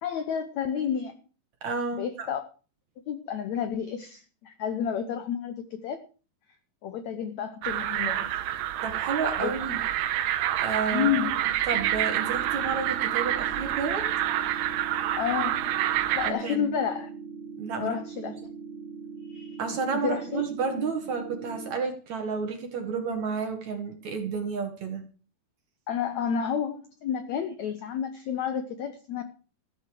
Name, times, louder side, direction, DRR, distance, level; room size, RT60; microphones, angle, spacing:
voice 1, 0.0-1.2 1.9-2.4 3.1-6.0 6.8-8.4 9.4-9.5 10.9-11.4 15.1-15.6 16.1-17.1 17.8-18.3 19.3-19.6 19.9-20.4 25.9-29.2, left 8 dB, 75° left, 1.7 m, -30 dB
voice 2, 1.6-2.3 8.8-9.8 10.6-11.2 11.6-14.1 16.2-16.7 17.6-18.3 19.6-25.0, right 5 dB, 55° right, 2.6 m, -31 dB
sound 1, 7.6-16.3, right 12 dB, 80° right, 2.8 m, -28 dB
sound 2, 11.7-21.7, right 5 dB, ahead, 2.5 m, -41 dB
14.5 x 8.0 x 7.7 m
omnidirectional pair, 4.6 m